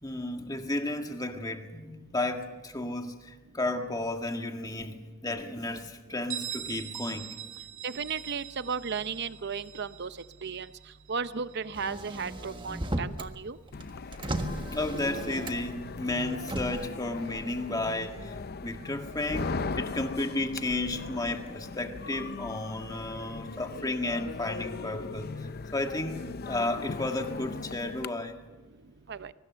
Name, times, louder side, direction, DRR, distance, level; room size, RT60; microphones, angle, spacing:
voice 1, 0.0-4.9 5.2-7.3 14.7-18.3 18.6-28.4, left 2 dB, 20° left, 5 dB, 1.8 m, -33 dB
Bell, 6.3-11.8, right 10 dB, 85° right, 3.1 m, -42 dB
voice 2, 7.8-10.1 10.4-10.7 11.1-13.6 29.1-29.3, right 5 dB, 55° right, 13 dB, 0.7 m, -34 dB
Motor vehicle (road), 11.7-13.3 13.7-15.8 16.4-16.9, right 1 dB, 25° right, 1.5 m, -35 dB
sound 1, 13.7-28.1, left 4 dB, 45° left, 0.6 m, -39 dB
23.5 x 20.0 x 6.9 m, 1.2 s
head